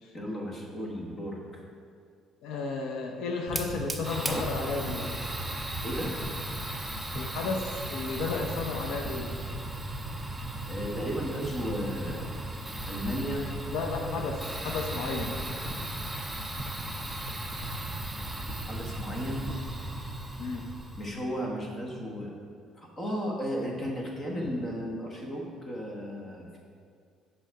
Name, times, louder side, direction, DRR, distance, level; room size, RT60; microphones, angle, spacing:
voice 1, 0.1-1.6 5.8-6.2 10.7-12.3 12.8-13.5 15.7-15.8 18.6-19.5 21.0-22.3 22.7-26.6, equal, 20° left, -1 dB, 1.2 m, -34 dB
voice 2, 2.4-5.1 7.1-9.4 13.7-15.4 20.4-20.7, left 4 dB, 65° left, 3 dB, 0.7 m, -33 dB
Fire, 3.5-21.1, right 1 dB, ahead, 0.5 m, -36 dB
9.1 x 6.0 x 4.7 m, 2.2 s
cardioid pair, 175°, 0 cm